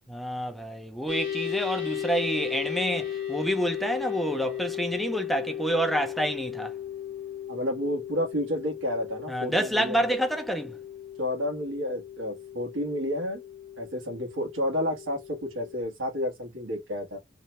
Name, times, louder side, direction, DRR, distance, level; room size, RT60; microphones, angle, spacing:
voice 1, 0.1-6.7 9.3-10.7, right 1 dB, ahead, 0.3 m, -28 dB
sound 1, 1.1-15.8, left 10 dB, 45° left, 1.0 m, -36 dB
voice 2, 7.5-10.0 11.2-13.4 13.8-17.2, left 1 dB, 85° right, 1.1 m, -30 dB
2.8 x 2.0 x 2.9 m
head